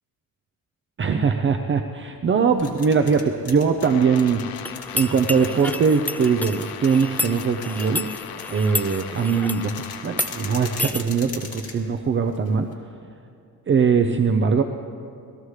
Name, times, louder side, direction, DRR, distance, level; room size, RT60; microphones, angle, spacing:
voice 1, 1.0-4.4 4.9-8.1 8.5-12.7 13.7-14.6, right 5 dB, 35° right, 6 dB, 0.6 m, -21 dB
sound 1, 2.4-12.7, left 5 dB, 40° left, 2.1 m, -41 dB
sound 2, 3.8-10.8, left 11 dB, 70° left, 0.7 m, -39 dB
sound 3, 4.6-9.7 10.1-10.3 10.8-11.0, left 2 dB, 5° left, 0.3 m, -31 dB
21.0 x 14.5 x 3.2 m, 2.5 s
cardioid pair, 105°, 36 cm